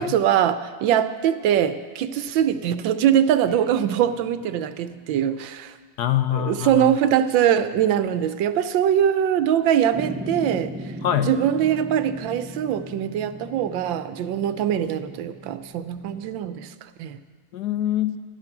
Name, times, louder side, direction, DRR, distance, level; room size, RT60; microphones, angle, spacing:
voice 1, 0.0-5.7 6.3-10.7 11.2-16.7 17.0-17.2, right 10 dB, 80° right, 12 dB, 1.4 m, -22 dB
Guitar, 3.5-6.7, right 1 dB, 25° right, 1.3 m, -47 dB
voice 2, 6.0-6.9 11.0-11.3 17.5-18.2, left 12 dB, 70° left, 10 dB, 1.0 m, -24 dB
sound 1, 9.9-16.4, right 1 dB, 10° right, 0.7 m, -37 dB
14.5 x 12.5 x 5.9 m, 1.5 s
omnidirectional pair, 2.1 m